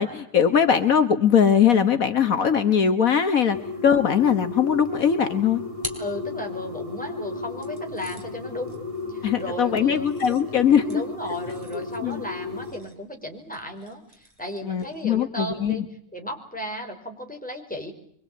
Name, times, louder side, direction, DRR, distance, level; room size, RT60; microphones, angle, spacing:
voice 1, 0.0-3.6 3.8-5.6 9.2-11.0 11.7-12.2 14.7-15.9, left 7 dB, 70° left, 9 dB, 1.8 m, -21 dB
sound 1, 3.5-12.7, left 3 dB, 20° left, 8.2 m, -34 dB
sound 2, 5.8-6.9 7.6-15.2, right 1 dB, 25° right, 4.4 m, -45 dB
voice 2, 6.0-10.1 10.8-15.9 16.1-17.9, equal, 5° left, 2 dB, 5.1 m, -35 dB
24.5 x 24.0 x 8.7 m, 0.66 s
omnidirectional pair, 1.5 m